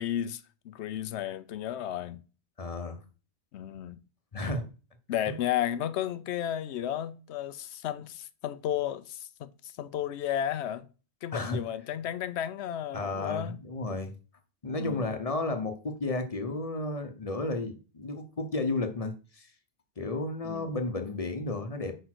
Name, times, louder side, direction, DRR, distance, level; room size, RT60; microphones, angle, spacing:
voice 1, 0.0-2.2 3.5-4.0 5.1-10.9 11.2-13.6 14.8-15.1 20.4-20.8, left 11 dB, 85° left, 0.9 m, -33 dB
voice 2, 2.6-3.0 4.3-4.7 11.3-11.6 12.9-14.1 14.6-19.5 20.0-22.0, left 2 dB, 35° left, 0.9 m, -33 dB
5.1 x 4.4 x 6.0 m
omnidirectional pair, 1.1 m